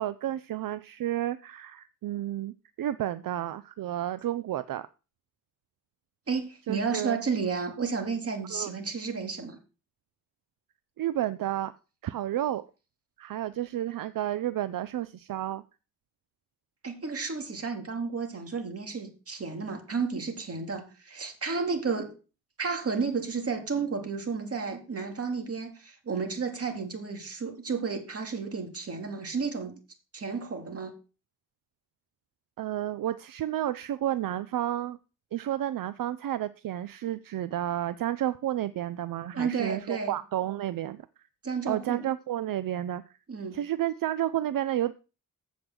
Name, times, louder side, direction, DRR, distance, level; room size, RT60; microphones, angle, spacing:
voice 1, 0.0-4.9 6.7-7.2 8.5-8.7 11.0-11.7 12.0-12.7 13.2-15.6 32.6-35.0 35.3-41.0 41.7-43.0 43.5-44.9, right 12 dB, 75° right, 14 dB, 0.5 m, -31 dB
voice 2, 6.3-9.6 16.8-22.1 22.6-29.8 30.1-30.9 39.3-40.1 41.4-42.1 43.3-43.6, right 5 dB, 45° right, 4 dB, 2.1 m, -32 dB
7.9 x 5.1 x 7.5 m, 0.33 s
wide cardioid pair, 120°, 34 cm